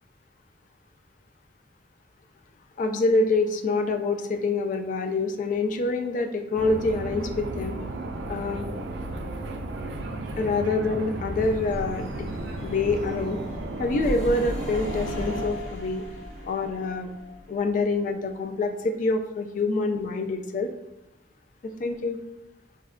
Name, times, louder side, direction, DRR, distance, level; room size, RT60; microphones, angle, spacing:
voice 1, 2.8-7.8 8.3-8.7 10.3-12.3 12.6-13.4 13.8-16.1 16.5-17.1 17.5-20.7 21.8-22.2, left 3 dB, 45° left, 6 dB, 0.3 m, -26 dB
sound 1, 6.5-15.5, right 2 dB, 70° right, 0.4 m, -34 dB
sound 2, 11.1-18.6, equal, 65° left, 1.0 m, -37 dB
4.4 x 2.1 x 2.4 m, 0.91 s
head